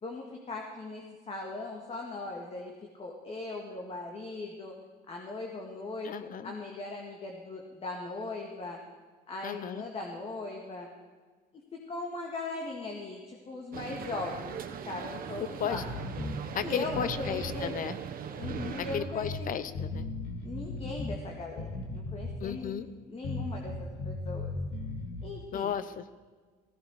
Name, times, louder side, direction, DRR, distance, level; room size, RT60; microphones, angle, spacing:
voice 1, 0.0-4.7 5.1-8.8 9.3-10.9 11.5-14.6 14.9-15.9 16.6-17.8 18.3-19.7 20.4-21.7 21.9-22.8 23.1-24.5 25.2-25.7, left 2 dB, 35° left, 0 dB, 2.0 m, -39 dB
voice 2, 6.0-6.5 9.4-9.8 15.4-15.8 16.5-18.0 18.8-20.1 22.4-22.9 25.5-26.1, left 8 dB, 55° left, 13 dB, 0.9 m, -34 dB
sound 1, 13.7-19.0, right 8 dB, 60° right, 1.3 m, -40 dB
sound 2, 15.7-16.4 16.9-17.6 18.4-19.4 19.7-21.2 21.6-22.5 23.2-25.3, left 2 dB, 80° left, 2.4 m, -37 dB
16.0 x 14.0 x 4.9 m, 1.5 s
cardioid pair, 110°, 17 cm